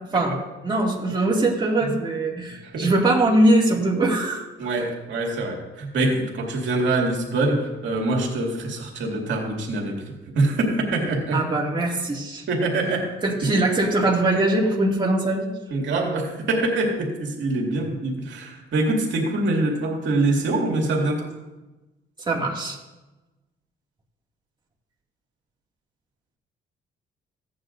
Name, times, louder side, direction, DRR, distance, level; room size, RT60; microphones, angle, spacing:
voice 1, 0.6-4.5 11.3-12.4 13.2-15.5 22.3-22.8, right 2 dB, 25° right, -2 dB, 2.2 m, -21 dB
voice 2, 4.6-10.0 10.3-11.4 12.5-13.1 15.7-21.3, right 2 dB, 70° right, -1 dB, 2.3 m, -24 dB
16.0 x 9.6 x 2.6 m, 1.1 s
cardioid pair, 90°, 20 cm